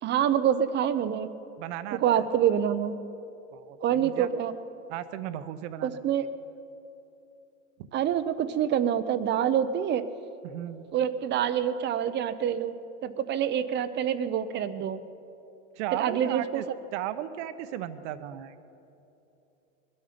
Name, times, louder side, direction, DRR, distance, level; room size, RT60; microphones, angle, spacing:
voice 1, 0.0-1.3 1.9-2.9 3.8-4.5 5.8-6.2 7.9-10.1 10.9-12.7 13.0-15.0 15.9-16.6, right 9 dB, 30° right, 12 dB, 0.7 m, -26 dB
voice 2, 1.6-2.3 3.5-4.3 4.9-6.0 10.4-10.8 15.8-16.6 16.9-18.5, right 12 dB, 65° right, 11 dB, 1.0 m, -35 dB
21.0 x 12.5 x 5.2 m, 2.9 s
supercardioid pair, 125°, 38 cm